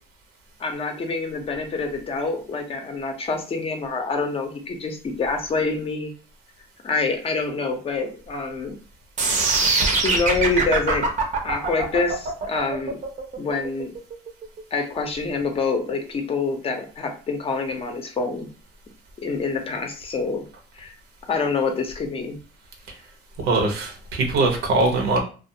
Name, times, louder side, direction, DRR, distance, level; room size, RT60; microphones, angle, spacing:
voice 1, 0.6-6.1 6.8-8.8 9.9-11.1 11.4-13.0 13.4-13.9 14.7-18.5 19.2-20.4 20.8-20.9 21.3-22.4, left 4 dB, 35° left, 4 dB, 0.6 m, -26 dB
sound 1, 9.2-15.2, right 3 dB, 45° right, 0.6 m, -23 dB
voice 2, 23.4-25.2, right 2 dB, 80° right, 2 dB, 0.8 m, -21 dB
2.4 x 2.4 x 2.7 m, 0.36 s
cardioid pair, 110°, 17 cm